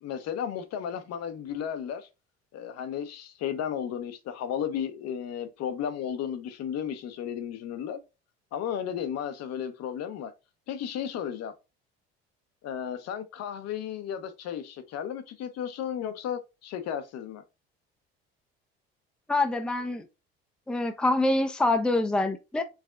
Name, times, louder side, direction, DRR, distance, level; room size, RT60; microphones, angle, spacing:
voice 1, 0.0-2.1 2.5-8.0 8.5-10.3 10.7-11.5 12.6-17.4, left 8 dB, 55° left, 0.7 m, -34 dB
voice 2, 19.3-20.1 20.7-22.6, left 2 dB, 5° left, 0.5 m, -25 dB
4.7 x 3.4 x 2.3 m
hypercardioid pair, 70°, 31 cm